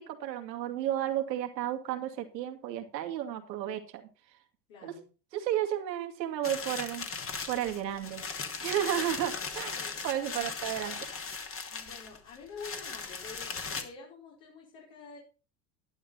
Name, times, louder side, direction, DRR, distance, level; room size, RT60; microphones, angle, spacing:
voice 1, 0.0-4.0 4.8-4.9 5.3-7.1 7.5-8.2 8.6-9.8 10.0-11.0, right 11 dB, 85° right, 5 dB, 2.3 m, -32 dB
voice 2, 4.7-5.1 9.7-10.0 10.3-10.5 11.7-15.2, left 5 dB, 65° left, -4 dB, 5.1 m, -48 dB
sound 1, 6.4-13.8, left 5 dB, 25° left, 2.2 m, -38 dB
11.5 x 11.0 x 4.0 m, 0.34 s
hypercardioid pair, 90°, 49 cm